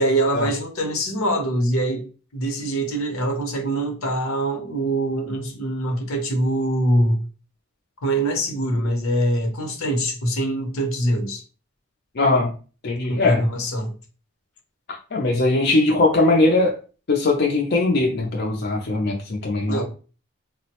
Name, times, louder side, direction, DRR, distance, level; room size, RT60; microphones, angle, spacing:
voice 1, 0.0-2.0 2.3-7.2 8.0-11.4 13.1-13.9 19.7-19.8, right 1 dB, 85° left, 0.8 m, -23 dB
voice 2, 12.2-12.5 12.8-13.5 15.1-16.8 17.1-19.8, left 2 dB, 50° left, 0.5 m, -20 dB
3.7 x 2.0 x 2.9 m
head